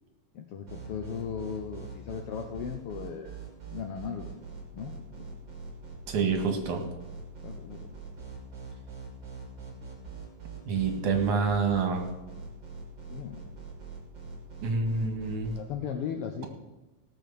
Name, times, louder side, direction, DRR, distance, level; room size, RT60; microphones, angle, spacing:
voice 1, 0.3-3.4 3.7-4.3 4.7-5.3 7.4-7.9 13.1-13.4 15.5-16.4, left 7 dB, 75° left, 5 dB, 1.3 m, -37 dB
sound 1, 0.7-15.6, right 5 dB, 50° right, 3.7 m, -43 dB
voice 2, 6.1-6.8 10.7-12.0 14.6-15.5, right 4 dB, 75° right, 4 dB, 3.1 m, -27 dB
17.0 x 6.5 x 6.9 m, 1.0 s
omnidirectional pair, 3.6 m